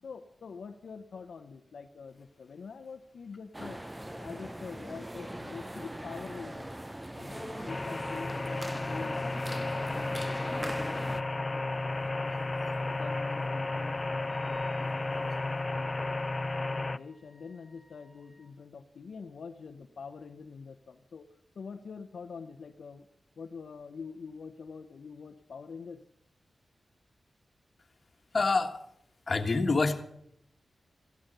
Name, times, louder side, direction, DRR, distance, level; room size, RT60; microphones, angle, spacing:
voice 1, 0.0-3.8 4.1-6.7 7.1-10.1 10.5-11.9 12.7-16.2 16.6-21.3 21.5-23.1 23.4-26.0, left 5 dB, 75° left, 5 dB, 0.8 m, -45 dB
sound 1, 3.5-11.2, right 1 dB, 10° right, 0.6 m, -41 dB
sound 2, 7.7-17.0, left 2 dB, 30° left, 0.5 m, -33 dB
Wind instrument woodwind instrument, 14.3-18.5, equal, 30° right, 7.4 m, -63 dB
voice 2, 28.3-28.8 29.3-30.0, left 3 dB, 50° left, 6 dB, 1.5 m, -27 dB
15.0 x 13.0 x 6.7 m, 0.77 s
cardioid pair, 65°, 0 cm